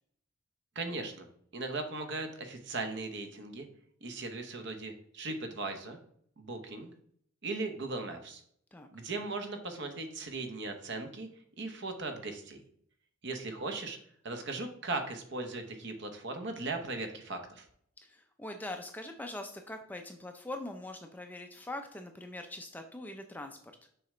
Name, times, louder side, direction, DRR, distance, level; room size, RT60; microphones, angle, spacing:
voice 1, 0.8-1.3 1.5-3.7 4.0-6.0 6.4-6.9 7.4-8.4 8.9-11.3 11.6-12.6 13.2-14.0 14.2-17.7, right 3 dB, 55° right, 6 dB, 0.8 m, -38 dB
voice 2, 18.0-23.6, left 1 dB, 10° left, 5 dB, 0.4 m, -42 dB
6.7 x 4.9 x 3.2 m, 0.66 s
head